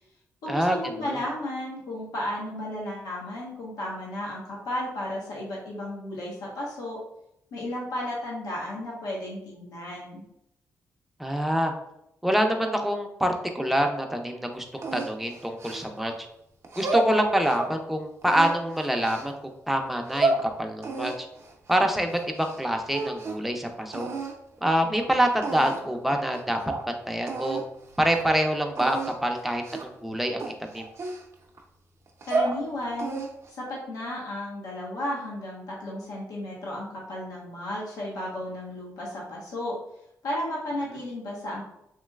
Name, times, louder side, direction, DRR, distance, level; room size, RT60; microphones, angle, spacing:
voice 1, 0.4-7.0 7.5-10.2 32.3-33.2 33.5-39.8 40.2-41.6, left 1 dB, 90° left, -4 dB, 1.0 m, -33 dB
voice 2, 11.2-11.7 12.2-16.1 16.8-21.1 21.7-24.1 24.6-26.6 26.9-27.6 28.0-30.4 30.7-30.9, equal, 5° right, 3 dB, 0.5 m, -26 dB
sound 1, 14.8-16.2 16.6-17.8 18.2-19.3 19.9-20.4 20.8-22.6 22.9-23.5 23.9-24.4 25.0-25.1 25.4-26.0 26.3-26.4 26.7-26.8 27.3-27.6 28.0-28.2 28.8-29.1 29.6-30.0 30.4-31.6 32.1-32.6 33.0-33.5, right 3 dB, 50° right, 0.6 m, -30 dB
3.1 x 2.9 x 2.3 m, 0.78 s
cardioid pair, 80°, 6 cm